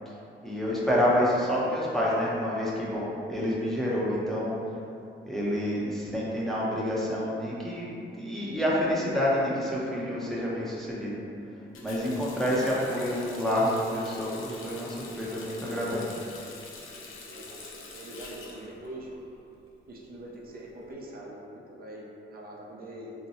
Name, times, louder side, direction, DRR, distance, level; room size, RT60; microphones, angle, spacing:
voice 1, 0.4-4.6 5.3-7.9 8.2-11.1 11.8-16.1, equal, ahead, -7 dB, 0.7 m, -28 dB
sound 1, 8.3-13.1, left 1 dB, 35° left, 1.0 m, -45 dB
Water tap faucet, 11.7-19.5 19.8-20.8, left 3 dB, 80° left, 0.5 m, -45 dB
voice 2, 17.3-19.1 19.9-23.1, right 1 dB, 45° right, -3 dB, 0.6 m, -43 dB
2.8 x 2.2 x 4.1 m, 2.7 s
cardioid pair, 90°, 21 cm